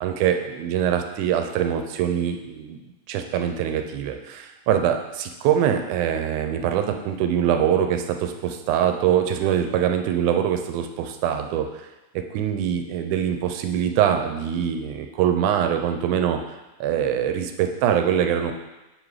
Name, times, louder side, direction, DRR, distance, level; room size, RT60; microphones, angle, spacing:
voice 1, 0.0-2.8 3.1-11.7 12.3-16.4 16.8-18.5, right 9 dB, 85° right, 6 dB, 2.0 m, -23 dB
7.0 x 3.8 x 4.7 m, 1.0 s
omnidirectional pair, 3.5 m